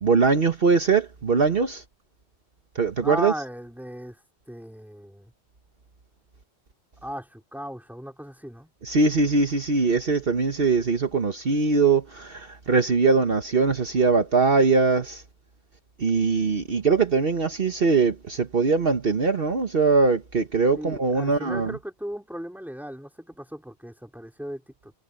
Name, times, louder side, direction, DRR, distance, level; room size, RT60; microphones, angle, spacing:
voice 1, 0.0-1.8 2.7-3.3 8.8-15.2 16.0-21.7, right 4 dB, 55° right, 1.4 m, -21 dB
voice 2, 3.0-4.2 4.5-5.3 7.0-8.7 20.8-24.9, equal, ahead, 3.7 m, -36 dB
omnidirectional pair, 1.2 m